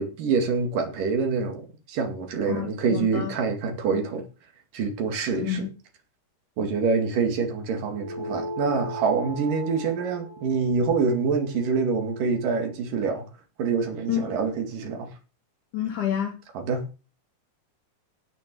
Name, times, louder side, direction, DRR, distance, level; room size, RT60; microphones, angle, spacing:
voice 1, 0.0-4.3 4.7-5.7 6.6-13.3 13.6-15.1 16.6-16.9, right 5 dB, 90° right, 4.0 m, -26 dB
voice 2, 2.5-3.3 5.4-5.7 14.1-14.3 15.7-16.3, left 10 dB, 70° left, 3.9 m, -28 dB
sound 1, 8.0-12.8, equal, 5° left, 3.0 m, -38 dB
16.5 x 6.8 x 7.7 m
omnidirectional pair, 3.7 m